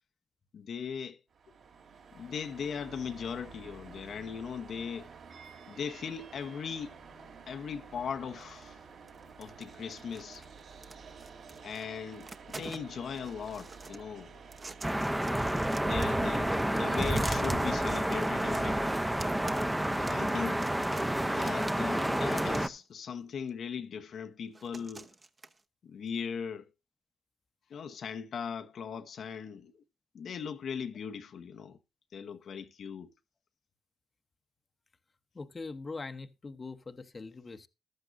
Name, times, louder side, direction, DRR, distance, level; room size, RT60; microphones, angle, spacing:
voice 1, 0.5-1.2 2.1-5.1 5.7-7.0 7.5-8.8 9.4-10.5 11.6-14.4 15.7-18.9 20.1-20.6 21.3-25.1 25.8-26.7 27.7-29.7 30.1-31.8 32.1-33.1, left 7 dB, 60° left, 0.8 m, -39 dB
sound 1, 1.3-20.1, right 5 dB, 65° right, 3.3 m, -51 dB
sound 2, 8.4-8.8 9.1-11.9 12.1-14.0 14.4-16.3 16.6-22.8 23.5-23.6 24.5-25.6, right 3 dB, 30° right, 0.9 m, -49 dB
sound 3, 14.8-22.7, right 1 dB, 5° right, 0.7 m, -29 dB
voice 2, 35.3-37.7, left 3 dB, 30° left, 0.9 m, -43 dB
14.5 x 12.0 x 2.6 m
cardioid pair, 90°, 0 cm